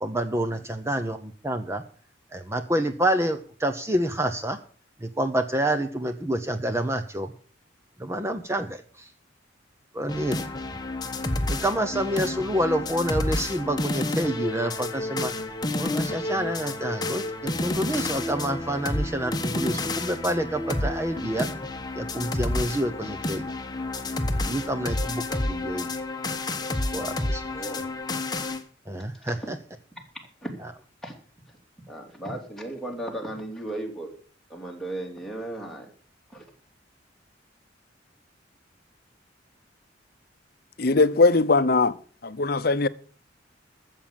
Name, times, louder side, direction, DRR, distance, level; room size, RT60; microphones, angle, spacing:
voice 1, 0.0-1.8 2.3-4.6 5.0-7.3 8.0-9.1 9.9-10.4 11.5-15.3 15.8-21.5 21.9-23.4 24.4-25.9 26.9-27.4 28.9-29.6 30.6-30.7, right 1 dB, 15° right, 0.8 m, -28 dB
sound 1, 10.1-28.6, left 2 dB, 20° left, 1.2 m, -30 dB
voice 2, 27.5-27.8 29.2-29.3 30.4-30.5 31.0-31.1 31.9-34.1 34.5-35.9 36.3-36.4, right 1 dB, ahead, 2.9 m, -35 dB
voice 3, 40.8-41.9 42.2-42.9, left 3 dB, 50° left, 0.7 m, -20 dB
14.0 x 7.5 x 7.4 m
head